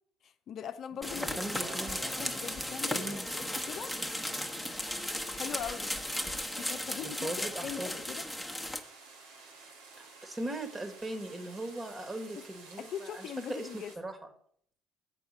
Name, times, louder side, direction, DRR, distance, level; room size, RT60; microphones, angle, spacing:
voice 1, 0.2-1.6 2.0-3.9 5.0-6.0 6.6-8.2 12.4-12.5 12.8-13.9, left 8 dB, 55° left, 0.6 m, -41 dB
sound 1, 1.0-8.8, left 1 dB, ahead, 1.2 m, -36 dB
voice 2, 1.1-2.1 2.9-3.3 7.0-8.0 10.0-14.2, right 1 dB, 25° right, 2.0 m, -39 dB
sound 2, 1.5-13.9, right 4 dB, 80° right, 1.8 m, -52 dB
7.8 x 6.0 x 6.8 m
hypercardioid pair, 55°, 0 cm